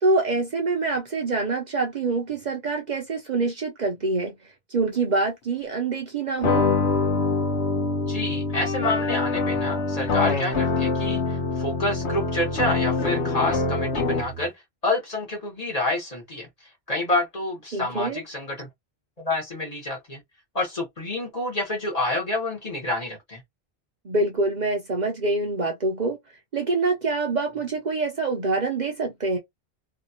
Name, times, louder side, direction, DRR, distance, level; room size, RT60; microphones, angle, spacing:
voice 1, 0.0-4.4 4.7-6.7 17.7-18.2 24.0-26.2 26.5-29.4, right 3 dB, 50° right, 0.7 m, -25 dB
sound 1, 6.4-14.5, left 3 dB, 90° left, 1.1 m, -25 dB
voice 2, 8.0-14.5 14.8-16.5 16.9-18.7 19.2-20.2 20.5-23.4, left 2 dB, 40° left, 1.2 m, -28 dB
2.8 x 2.3 x 2.7 m
omnidirectional pair, 1.1 m